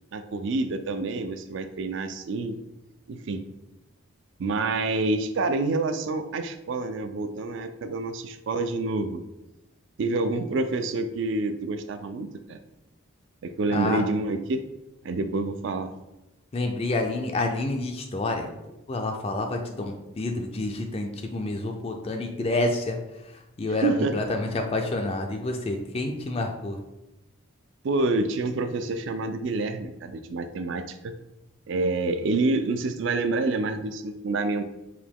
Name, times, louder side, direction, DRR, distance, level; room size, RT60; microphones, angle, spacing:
voice 1, 0.1-2.6 3.1-3.4 4.4-9.2 10.0-12.6 13.4-14.6 15.0-15.9 23.8-24.1 27.8-31.2 31.7-34.6, right 3 dB, 60° right, 9 dB, 0.3 m, -27 dB
voice 2, 16.5-18.5 18.9-23.0 23.2-26.8, left 2 dB, 30° left, 3 dB, 0.3 m, -28 dB
4.9 x 2.2 x 3.6 m, 0.98 s
head